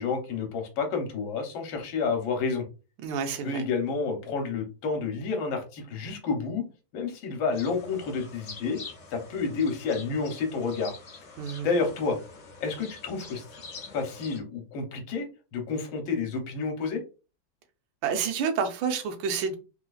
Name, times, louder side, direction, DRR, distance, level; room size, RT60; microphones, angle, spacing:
voice 1, 0.0-2.6 3.4-6.6 6.9-8.8 9.1-10.9 11.6-12.2 12.6-13.4 13.9-17.0, left 4 dB, 75° left, 1.6 m, -30 dB
voice 2, 3.0-3.6 11.4-11.7 18.0-19.6, right 6 dB, 75° right, 1.3 m, -29 dB
sound 1, 7.5-14.4, left 4 dB, 60° left, 0.8 m, -46 dB
3.7 x 2.7 x 2.3 m
omnidirectional pair, 2.2 m